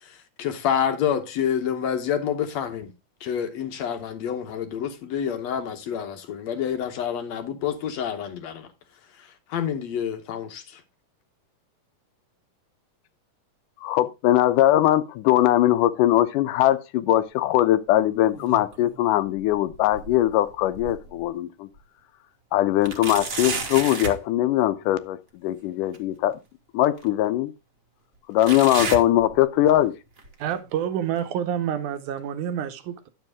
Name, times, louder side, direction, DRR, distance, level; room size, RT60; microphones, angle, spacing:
voice 1, 0.0-2.9 3.2-8.7 9.2-10.8, left 8 dB, 65° left, 2.0 m, -28 dB
voice 2, 13.8-21.7 22.5-25.2 25.4-26.4 26.7-27.5 28.3-29.9, left 13 dB, 85° left, 2.3 m, -21 dB
sound 1, 18.1-19.0 19.4-21.3 21.8-21.9 22.8-24.2 25.9-26.0 27.0-27.1 28.4-29.8 30.2-30.5 31.2-31.3 32.2-32.3, right 4 dB, 40° right, 1.2 m, -33 dB
voice 3, 30.4-33.1, right 9 dB, 75° right, 2.3 m, -28 dB
10.5 x 7.3 x 3.5 m
omnidirectional pair, 3.7 m